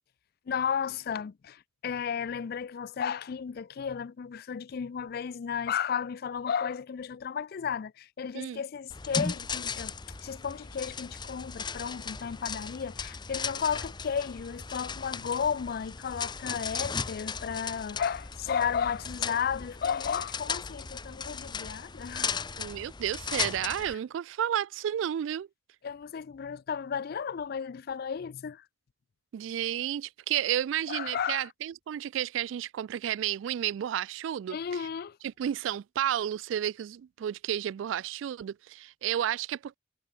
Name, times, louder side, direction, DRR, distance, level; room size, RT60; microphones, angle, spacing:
voice 1, 0.5-9.9 10.2-22.5 23.8-24.0 25.8-28.6 30.9-31.5 34.5-35.2, left 7 dB, 55° left, 0.4 m, -33 dB
sound 1, 8.9-23.9, left 5 dB, 25° left, 0.7 m, -37 dB
voice 2, 22.6-25.5 29.3-34.8 35.2-39.8, right 10 dB, 85° right, 0.3 m, -32 dB
head